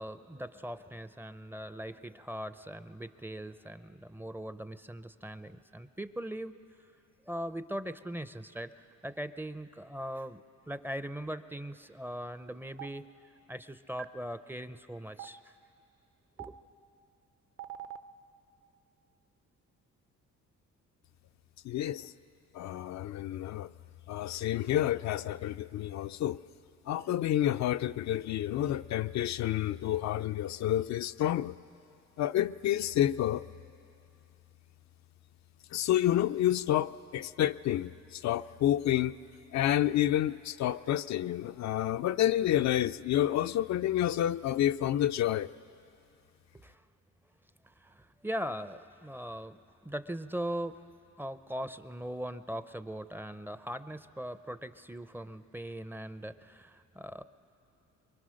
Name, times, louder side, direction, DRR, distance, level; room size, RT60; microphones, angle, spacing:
voice 1, 0.0-6.5 7.3-13.1 13.5-15.4 16.4-16.6 46.5-46.8 47.6-50.8 51.2-57.2, equal, 5° right, 12 dB, 0.5 m, -40 dB
Stream, 12.8-12.9 14.0-14.1 15.2-15.3 16.4-16.5 17.6-18.0, right 11 dB, 45° right, 0.7 m, -40 dB
voice 2, 21.6-22.1 22.5-23.7 24.1-26.4 26.9-31.6 32.2-33.4 35.7-39.2 39.5-45.5, left 12 dB, 65° left, 11 dB, 0.5 m, -29 dB
24.5 x 22.0 x 6.4 m, 2.7 s
cardioid pair, 90°, 30 cm